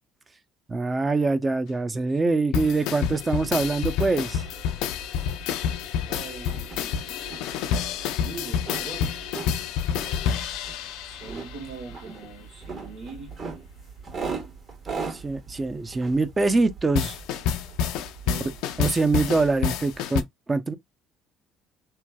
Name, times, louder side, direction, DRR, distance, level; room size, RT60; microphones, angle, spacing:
voice 1, 0.7-4.4 15.1-17.2 18.8-20.7, right 3 dB, 25° right, 0.5 m, -24 dB
sound 1, 2.5-11.7 16.9-20.2, left 8 dB, 80° left, 0.4 m, -28 dB
sound 2, 3.6-20.1, right 4 dB, 40° right, 1.3 m, -40 dB
voice 2, 6.1-7.1 8.2-9.5 11.1-13.3 18.2-18.6, right 3 dB, 75° right, 1.2 m, -41 dB
3.0 x 2.2 x 2.2 m
supercardioid pair, 85°, 0 cm